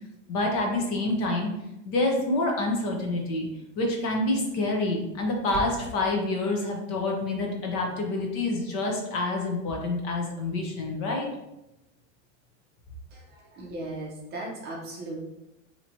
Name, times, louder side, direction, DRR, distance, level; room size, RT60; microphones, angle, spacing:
voice 1, 0.3-1.5 1.8-3.5 3.8-11.3, left 2 dB, 35° left, 0 dB, 0.8 m, -27 dB
sound 1, 5.1-6.1, equal, 55° left, 1.1 m, -40 dB
voice 2, 13.1-15.2, right 2 dB, 25° right, -3 dB, 0.7 m, -37 dB
4.7 x 2.9 x 2.7 m, 0.91 s
supercardioid pair, 160°, 39 cm